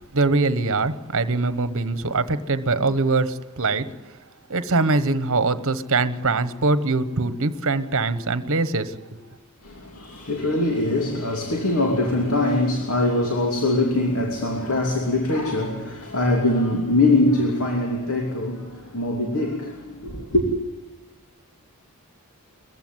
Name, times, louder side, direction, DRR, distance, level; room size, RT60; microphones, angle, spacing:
voice 1, 0.1-3.8 4.5-9.2, right 3 dB, 65° right, 1.2 m, -23 dB
voice 2, 9.6-20.4, left 2 dB, 70° left, 2.9 m, -23 dB
22.0 x 15.0 x 9.6 m
head